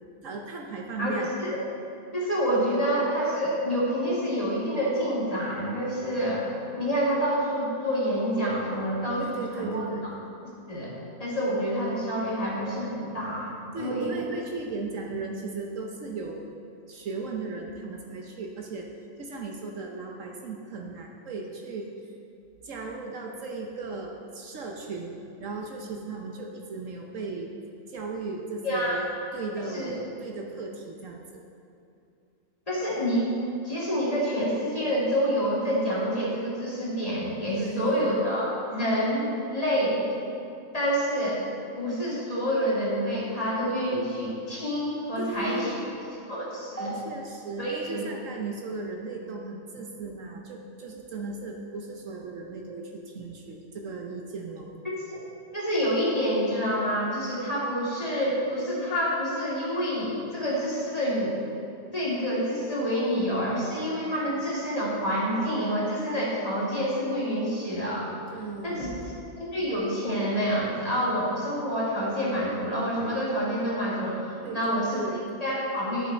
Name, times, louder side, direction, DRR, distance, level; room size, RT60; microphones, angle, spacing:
voice 1, 0.2-1.3 9.2-10.1 13.7-16.5 16.9-18.9 19.2-21.9 22.6-25.1 25.4-27.5 27.9-31.4 37.6-38.2 45.2-46.2 47.0-54.7 68.3-69.1 74.4-75.2, right 3 dB, 65° right, 1 dB, 1.1 m, -36 dB
voice 2, 2.1-6.5 6.8-9.8 10.7-10.9 11.2-14.1 28.6-29.0 29.7-29.9 32.7-33.3 33.6-40.1 40.7-41.4 41.8-45.7 46.3-47.0 47.6-48.0 55.1-55.2 55.5-61.4 61.9-68.1 68.6-68.9 69.4-74.2 74.5-75.0 75.4-76.1, equal, 25° left, -7 dB, 2.1 m, -27 dB
11.0 x 7.2 x 4.4 m, 2.6 s
omnidirectional pair, 1.5 m